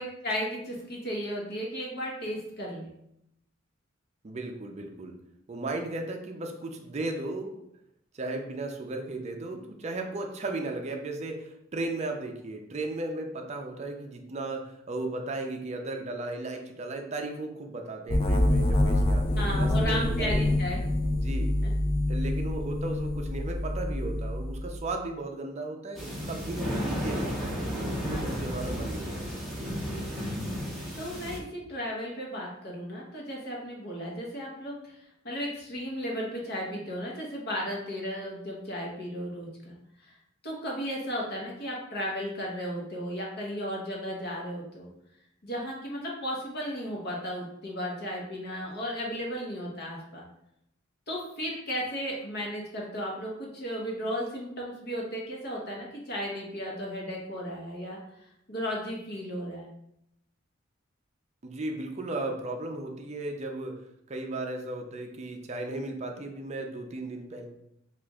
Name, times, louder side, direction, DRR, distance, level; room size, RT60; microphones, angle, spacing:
voice 1, 0.0-2.9 19.4-20.8 21.6-21.7 28.0-28.6 31.0-40.2 40.4-44.9 45.4-50.3 51.1-58.0 58.5-59.7, equal, 55° left, -2 dB, 0.9 m, -35 dB
voice 2, 4.2-5.1 5.5-7.6 8.1-20.5 21.1-21.5 22.1-27.8 28.1-29.3 29.9-30.1 61.4-63.8 64.1-67.5, right 2 dB, 35° right, 3 dB, 0.4 m, -35 dB
sound 1, 18.1-24.9, left 1 dB, 30° left, 0.4 m, -26 dB
sound 2, 25.9-31.4, equal, ahead, 0.7 m, -33 dB
3.0 x 2.4 x 3.5 m, 0.79 s
head